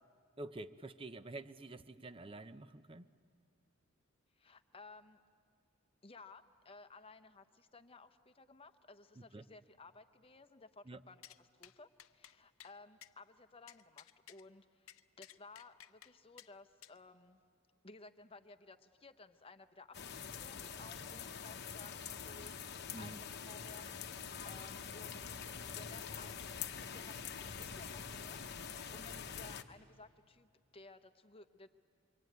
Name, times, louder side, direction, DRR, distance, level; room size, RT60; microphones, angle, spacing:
voice 1, 0.4-3.1 9.3-9.4 10.9-11.0 22.9-23.2, right 2 dB, 25° right, 12 dB, 0.6 m, -48 dB
voice 2, 4.3-5.2 6.0-17.4 17.8-25.2 25.7-31.7, left 3 dB, 25° left, 9 dB, 0.8 m, -57 dB
sound 1, 11.2-11.4 11.6-11.7 12.0-12.3 12.6-12.7 13.0-13.1 13.7-14.4 14.9-16.1 16.4-16.5 16.8-17.0, left 11 dB, 75° left, 0.6 m, -56 dB
sound 2, 19.9-29.6, left 6 dB, 50° left, 1.0 m, -45 dB
25.0 x 24.0 x 9.4 m, 2.2 s
head